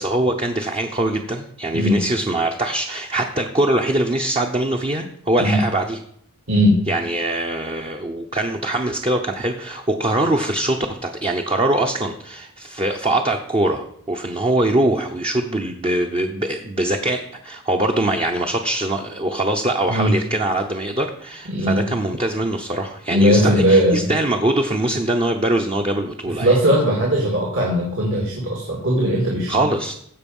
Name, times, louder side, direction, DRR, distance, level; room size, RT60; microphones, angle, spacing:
voice 1, 0.0-6.0 6.9-26.6 29.5-29.9, right 1 dB, 25° right, 3 dB, 0.7 m, -22 dB
voice 2, 21.5-21.8 23.1-24.1 26.4-29.6, equal, 70° right, -3 dB, 2.5 m, -18 dB
15.5 x 5.3 x 5.4 m, 0.69 s
head